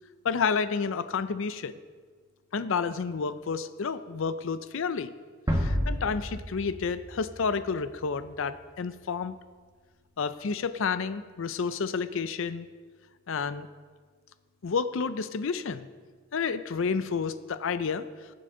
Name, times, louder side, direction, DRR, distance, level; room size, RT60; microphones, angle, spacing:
voice 1, 0.2-1.7 2.5-5.1 5.5-9.3 10.2-12.7 13.3-13.7 14.6-15.9 16.3-18.0, left 5 dB, 65° left, 12 dB, 0.5 m, -30 dB
sound 1, 5.5-8.3, equal, 15° right, 1.3 m, -31 dB
19.0 x 7.7 x 3.8 m, 1.5 s
head